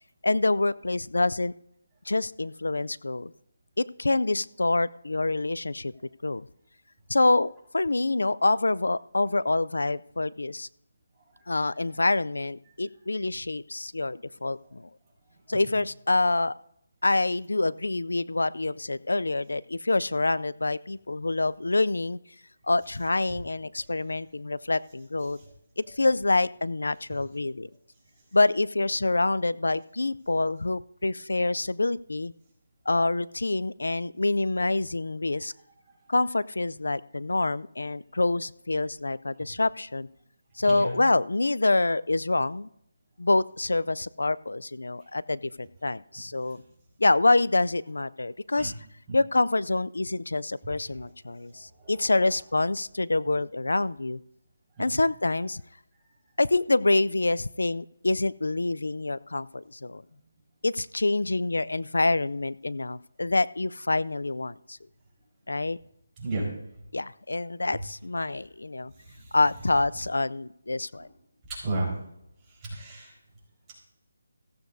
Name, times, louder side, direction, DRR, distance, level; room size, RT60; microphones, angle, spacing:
voice 1, 0.2-1.5 2.1-3.3 3.8-5.9 6.2-6.5 7.1-10.7 11.5-14.9 15.5-16.5 17.0-22.2 22.7-25.4 25.8-27.7 28.3-32.3 32.9-35.5 36.1-40.1 40.6-42.7 43.2-46.6 47.0-48.7 49.1-54.2 54.8-55.6 56.4-60.0 60.6-64.8 65.5-65.8 66.9-68.9 69.3-71.1, left 2 dB, 90° left, 18 dB, 0.4 m, -26 dB
voice 2, 51.5-52.1 54.7-54.8 66.2-66.4 69.0-69.4 71.6-71.9 72.6-73.1, right 2 dB, 15° right, -6 dB, 4.4 m, -33 dB
15.5 x 14.5 x 2.7 m, 0.76 s
figure-of-eight pair, 165°, 0 cm